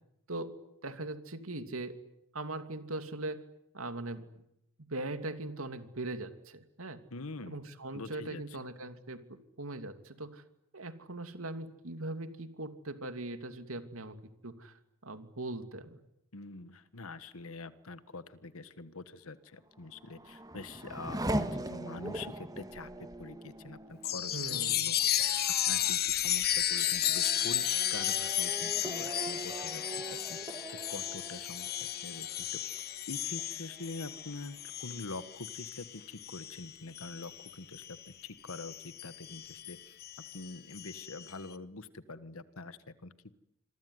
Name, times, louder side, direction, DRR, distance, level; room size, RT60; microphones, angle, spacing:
voice 1, 0.8-1.9 2.3-3.4 3.7-4.2 4.8-7.0 7.5-10.4 10.7-14.2 14.4-16.0 24.3-24.9, right 2 dB, 75° right, 9 dB, 2.7 m, -40 dB
voice 2, 7.1-7.7 7.9-8.4 16.3-25.0 25.7-32.6 33.1-40.0 40.3-43.3, left 3 dB, 75° left, 14 dB, 1.5 m, -45 dB
Race car auto racing / Accelerating revving vroom, 19.8-33.0 33.4-34.1, right 1 dB, 20° right, 1.8 m, -41 dB
Chime, 24.0-38.0 38.5-41.3, left 11 dB, 45° left, 1.4 m, -34 dB
26.5 x 23.0 x 9.6 m, 0.85 s
head